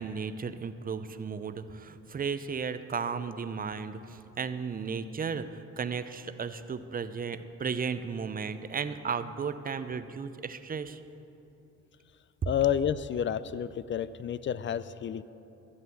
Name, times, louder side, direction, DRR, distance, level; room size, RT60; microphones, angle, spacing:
voice 1, 0.0-11.0, right 6 dB, 30° right, 11 dB, 0.6 m, -35 dB
voice 2, 12.5-15.2, left 9 dB, 40° left, 16 dB, 0.5 m, -30 dB
12.5 x 8.0 x 7.1 m, 2.9 s
cardioid pair, 90°, 30 cm